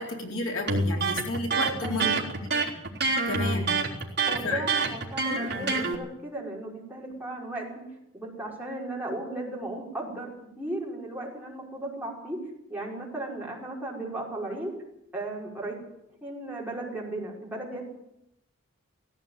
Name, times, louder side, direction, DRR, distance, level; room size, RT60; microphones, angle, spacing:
voice 1, 0.0-2.2 3.3-3.8 4.4-4.6, left 2 dB, 65° left, 0 dB, 4.1 m, -31 dB
Electric guitar, 0.7-6.0, right 3 dB, 50° right, 3.7 m, -26 dB
voice 2, 1.8-2.2 4.2-7.8 8.1-10.3 10.6-12.4 12.7-14.7 15.1-15.8 16.2-17.9, right 2 dB, 10° right, -4 dB, 5.4 m, -35 dB
17.5 x 16.5 x 9.0 m, 0.84 s
head